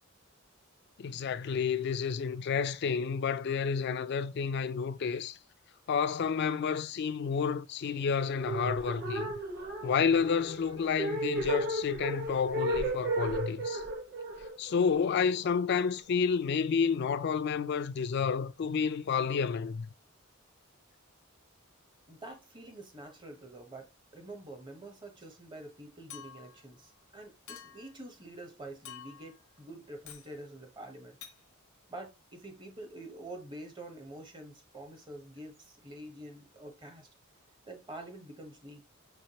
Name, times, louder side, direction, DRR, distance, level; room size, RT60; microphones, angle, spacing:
voice 1, 1.0-5.4 5.9-9.3 9.8-13.8 14.6-19.9, left 6 dB, 50° left, 0.4 m, -30 dB
sound 1, 8.4-15.6, right 1 dB, 55° right, 1.2 m, -34 dB
voice 2, 22.1-31.2 31.9-37.1 37.7-38.8, right 1 dB, 20° right, 0.8 m, -47 dB
Chink clink, 26.1-26.6 27.5-27.9 28.9-29.4 30.1-30.3 31.2-31.4, left 9 dB, 90° left, 0.7 m, -48 dB
4.8 x 3.2 x 2.8 m
head